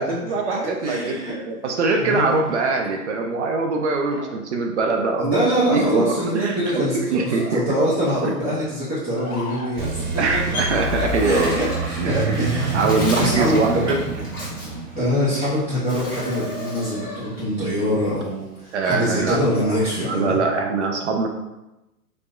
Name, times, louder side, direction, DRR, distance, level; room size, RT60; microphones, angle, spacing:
voice 1, 0.0-7.6 8.2-8.3 10.2-11.6 12.0-14.0 18.7-19.4 20.0-21.3, right 3 dB, 50° right, 3 dB, 0.5 m, -23 dB
voice 2, 0.8-1.3 1.9-2.4 5.2-10.0 10.7-12.9 13.2-13.8 15.0-20.3, equal, 15° right, -15 dB, 1.5 m, -24 dB
sound 1, 2.2-3.0 4.1-4.3 5.6-6.3 7.1-7.6 9.1-9.7 10.9-11.8 13.1-14.1 15.8-17.5 19.2-19.8, left 1 dB, 65° left, 1.4 m, -37 dB
sound 2, 9.8-16.4, right 3 dB, 75° right, 0.8 m, -27 dB
Bird, 10.0-15.5 15.8-17.1 17.4-19.1, left 1 dB, 15° left, 1.0 m, -35 dB
3.2 x 3.0 x 2.4 m, 0.98 s
figure-of-eight pair, 115°, 47 cm